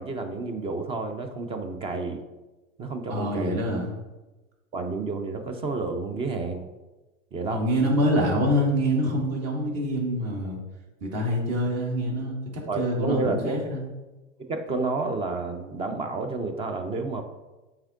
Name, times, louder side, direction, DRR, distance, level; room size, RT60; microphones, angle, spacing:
voice 1, 0.0-2.2 2.8-3.7 4.7-6.7 7.3-7.6 12.7-13.8 14.4-17.2, right 3 dB, 15° right, 7 dB, 0.4 m, -30 dB
voice 2, 3.1-3.9 7.5-10.6 11.0-13.8, equal, 40° right, -1 dB, 1.9 m, -25 dB
8.6 x 4.5 x 2.4 m, 1.1 s
hypercardioid pair, 105°, 39 cm